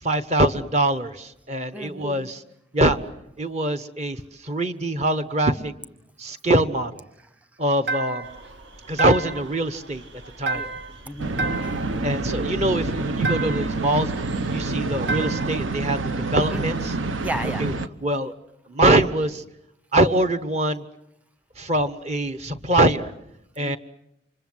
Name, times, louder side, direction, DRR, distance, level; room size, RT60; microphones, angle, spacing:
voice 1, 0.0-2.4 2.7-3.0 3.4-5.7 6.2-7.0 7.6-8.3 8.9-10.0 10.4-10.7 11.7-11.8 12.0-14.1 14.5-17.0 17.6-17.7 18.0-18.3 18.7-19.4 19.9-20.8 21.6-23.1 23.6-23.8, right 1 dB, 35° right, 12 dB, 1.1 m, -23 dB
voice 2, 1.7-2.1 10.5-10.7 11.1-11.8 16.5-16.6 17.2-17.6 23.6-23.8, equal, 10° right, 11 dB, 1.0 m, -33 dB
sound 1, 7.9-8.4 9.0-9.5 10.5-11.0 11.4-11.9 13.2-13.8 15.1-15.6, right 2 dB, 60° right, 1.4 m, -29 dB
sound 2, 8.2-14.6, right 1 dB, 75° right, 2.4 m, -45 dB
sound 3, 11.2-17.9, right 3 dB, 90° right, 1.1 m, -27 dB
29.0 x 25.5 x 7.9 m, 0.81 s
head